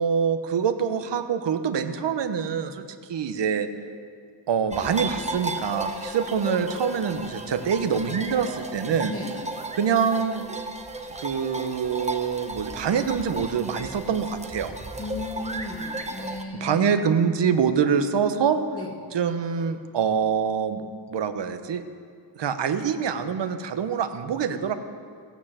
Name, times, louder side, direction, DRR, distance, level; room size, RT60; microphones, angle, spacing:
voice 1, 0.0-3.7 4.5-9.1 9.8-10.4 11.2-14.7 16.6-18.6 19.1-21.8 22.4-24.7, right 7 dB, 65° right, 9 dB, 1.1 m, -25 dB
sound 1, 4.7-16.4, right 2 dB, 15° right, 0.9 m, -35 dB
voice 2, 9.1-9.4 15.0-17.0 18.7-18.9, left 2 dB, 30° left, 1 dB, 2.2 m, -35 dB
16.0 x 9.4 x 7.5 m, 2.2 s
wide cardioid pair, 140°, 45 cm